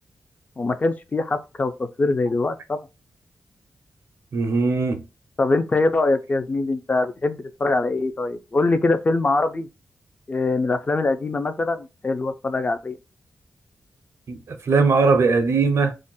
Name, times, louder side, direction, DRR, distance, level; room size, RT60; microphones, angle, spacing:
voice 1, 0.6-1.7 2.0-2.8 5.4-9.7 10.3-13.0, left 3 dB, 30° left, 0.4 m, -23 dB
voice 2, 4.3-5.0 14.3-15.9, right 4 dB, 70° right, 0.4 m, -20 dB
2.5 x 2.1 x 3.9 m
wide cardioid pair, 95°, 5 cm